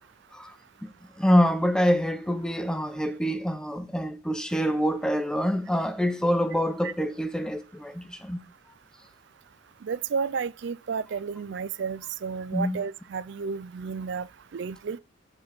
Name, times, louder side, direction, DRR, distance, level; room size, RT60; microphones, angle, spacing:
voice 1, 1.2-8.4 12.5-12.8, equal, 5° left, 0.5 m, -26 dB
voice 2, 9.8-14.3 14.5-15.0, right 5 dB, 55° right, 0.4 m, -32 dB
14.0 x 4.8 x 3.4 m
head